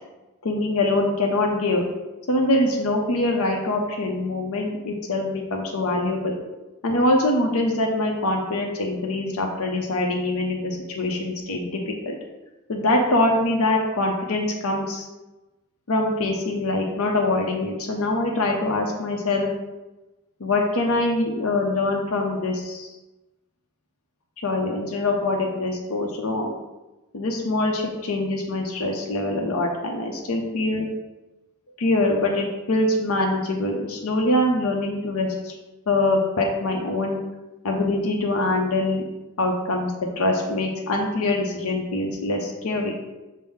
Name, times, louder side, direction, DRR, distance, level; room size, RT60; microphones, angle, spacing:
voice 1, 0.4-1.8 2.3-6.3 6.8-12.2 12.7-15.1 15.9-19.5 20.4-22.9 24.4-26.5 27.1-30.9 31.8-35.6 35.9-37.2 37.6-39.0 39.4-42.9, left 2 dB, 75° left, 1 dB, 0.6 m, -24 dB
5.4 x 2.0 x 4.9 m, 1.1 s
head